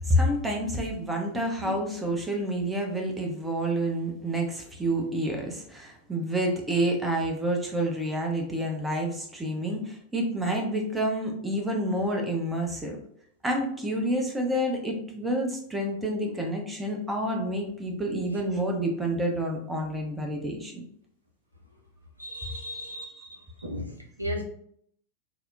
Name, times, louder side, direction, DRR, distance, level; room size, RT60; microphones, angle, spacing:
voice 1, 0.0-13.0 13.4-20.8 22.4-23.3, right 1 dB, 10° right, 1 dB, 0.5 m, -29 dB
voice 2, 22.2-24.4, left 1 dB, 85° right, 1 dB, 0.5 m, -36 dB
2.8 x 2.0 x 2.4 m, 0.67 s
figure-of-eight pair, 90°, 0 cm